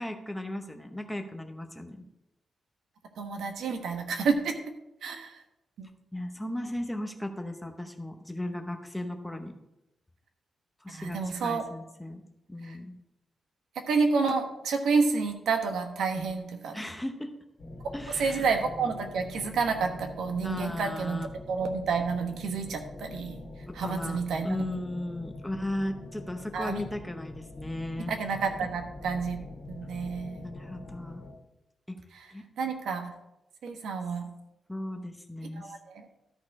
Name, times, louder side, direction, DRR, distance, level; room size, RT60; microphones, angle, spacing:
voice 1, 0.0-2.0 6.1-9.5 10.8-12.2 12.5-12.9 16.7-17.3 17.9-18.6 20.4-21.3 23.7-28.1 30.4-31.2 31.9-32.0 32.3-32.4 34.7-35.7, left 1 dB, 5° left, 5 dB, 0.8 m, -36 dB
voice 2, 3.2-4.5 5.0-5.4 5.8-5.9 10.9-11.6 12.7-12.8 13.9-16.8 17.8-17.9 18.2-21.2 21.5-23.4 23.7-24.6 26.5-26.8 28.1-29.4 29.7-30.5 32.6-33.1 33.6-34.3 35.5-36.1, right 4 dB, 85° right, 5 dB, 1.2 m, -29 dB
sound 1, 17.6-31.3, left 2 dB, 50° left, 2.2 m, -44 dB
13.0 x 4.4 x 4.8 m, 0.89 s
wide cardioid pair, 150°, 0 cm